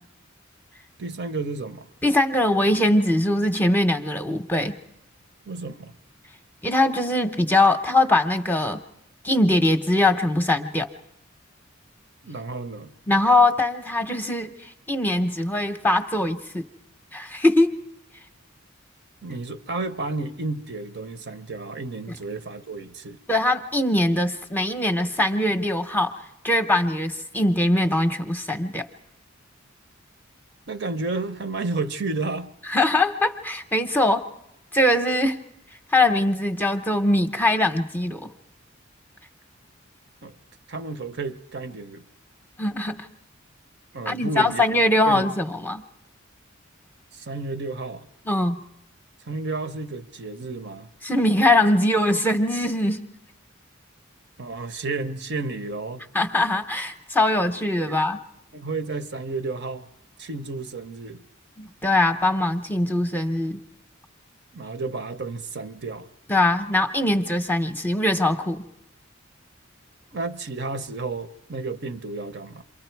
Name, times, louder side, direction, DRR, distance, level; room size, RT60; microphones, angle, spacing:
voice 1, 1.0-1.9 5.5-5.9 12.2-12.9 19.2-23.2 30.7-32.5 40.2-40.3 40.7-42.0 43.9-45.2 47.1-48.1 49.3-50.9 54.4-56.0 57.8-58.0 58.5-59.9 60.2-61.2 64.5-66.1 70.1-72.6, right 3 dB, 55° right, 10 dB, 0.8 m, -32 dB
voice 2, 2.0-4.8 6.6-8.8 9.2-10.9 13.1-16.6 17.1-17.8 22.1-22.2 23.3-26.2 26.4-28.9 32.7-34.3 34.7-35.4 35.9-38.3 42.6-43.1 44.1-45.8 48.3-48.6 51.0-53.1 56.1-58.2 61.6-63.6 66.3-68.6, left 1 dB, 10° left, 6 dB, 0.8 m, -22 dB
28.0 x 23.5 x 4.6 m, 0.85 s
head